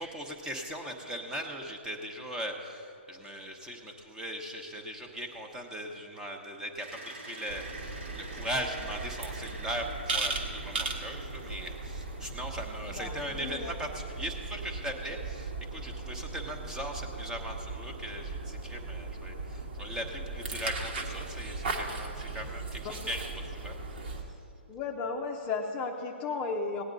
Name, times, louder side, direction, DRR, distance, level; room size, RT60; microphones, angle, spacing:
voice 1, 0.0-23.8, equal, 10° right, 3 dB, 1.1 m, -39 dB
sound 1, 6.8-13.8, right 2 dB, 85° right, 2.4 m, -48 dB
sound 2, 7.5-24.2, right 3 dB, 60° right, 1.6 m, -38 dB
voice 2, 13.0-13.8 22.8-22.9 24.7-26.8, left 4 dB, 25° left, 2 dB, 0.7 m, -34 dB
17.5 x 9.3 x 4.0 m, 2.7 s
figure-of-eight pair, 135°, 6 cm